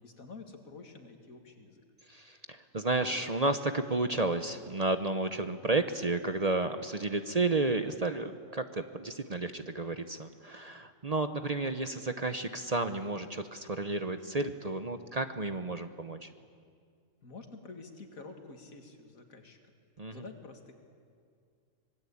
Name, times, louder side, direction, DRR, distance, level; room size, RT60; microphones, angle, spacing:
voice 1, 0.0-1.8 17.2-19.6 20.1-20.7, left 3 dB, 85° left, 5 dB, 2.6 m, -48 dB
voice 2, 2.1-16.3 20.0-20.2, right 2 dB, 35° right, 9 dB, 0.8 m, -32 dB
25.5 x 20.5 x 8.5 m, 2.2 s
omnidirectional pair, 1.4 m